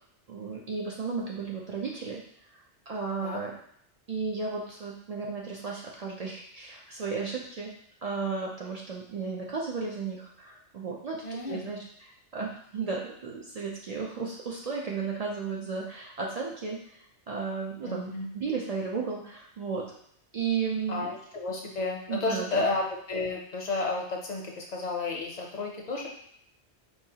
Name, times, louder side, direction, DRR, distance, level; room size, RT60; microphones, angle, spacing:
voice 1, 0.3-2.2 2.9-3.5 4.1-7.7 8.0-16.8 17.3-19.8 20.3-21.1 22.1-22.7, right 5 dB, 70° right, -2 dB, 0.3 m, -34 dB
voice 2, 11.2-11.7 17.8-18.3 20.9-26.1, left 3 dB, 50° left, 0 dB, 0.5 m, -32 dB
4.5 x 2.3 x 2.7 m, 0.70 s
omnidirectional pair, 1.2 m